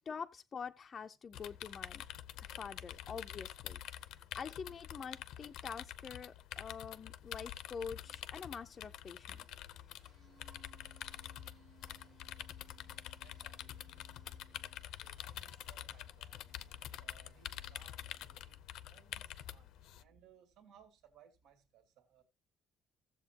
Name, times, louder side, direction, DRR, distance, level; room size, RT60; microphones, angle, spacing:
voice 1, 0.1-2.0 2.4-3.8 4.1-9.4, left 6 dB, 30° left, 0.5 m, -46 dB
sound 1, 1.3-20.0, left 12 dB, 75° left, 0.6 m, -47 dB
sound 2, 7.8-18.7, right 6 dB, 50° right, 1.3 m, -68 dB
voice 2, 11.8-16.5 17.0-22.2, right 7 dB, 80° right, 2.3 m, -66 dB
16.0 x 7.6 x 2.8 m
cardioid pair, 160°, 0 cm